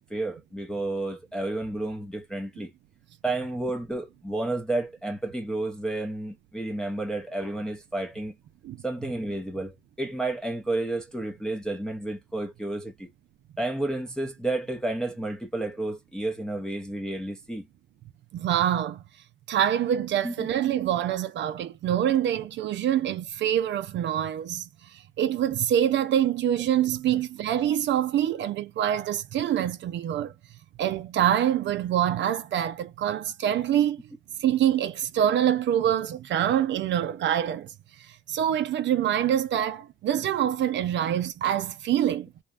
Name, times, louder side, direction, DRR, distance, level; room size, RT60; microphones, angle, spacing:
voice 1, 0.0-2.7 3.2-8.3 8.8-13.1 13.6-17.7 20.2-20.5, right 2 dB, 5° left, 0.6 m, -31 dB
voice 2, 18.3-19.0 19.5-30.3 30.8-34.0 34.4-42.3, right 10 dB, 65° right, 0.5 m, -25 dB
2.9 x 2.1 x 2.4 m
cardioid pair, 90°, 20 cm